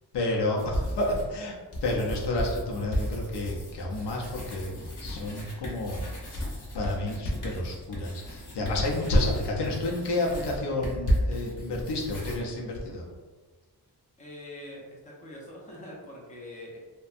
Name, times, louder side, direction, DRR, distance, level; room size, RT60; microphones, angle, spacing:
voice 1, 0.1-4.7 5.0-6.3 6.7-13.1, left 1 dB, 85° left, -1 dB, 0.6 m, -30 dB
sound 1, 0.6-1.4 1.7-12.4, equal, 50° left, 0.8 m, -34 dB
voice 2, 14.2-16.8, left 1 dB, 20° left, -4 dB, 0.5 m, -44 dB
2.6 x 2.2 x 2.4 m, 1.4 s
wide cardioid pair, 140°, 40 cm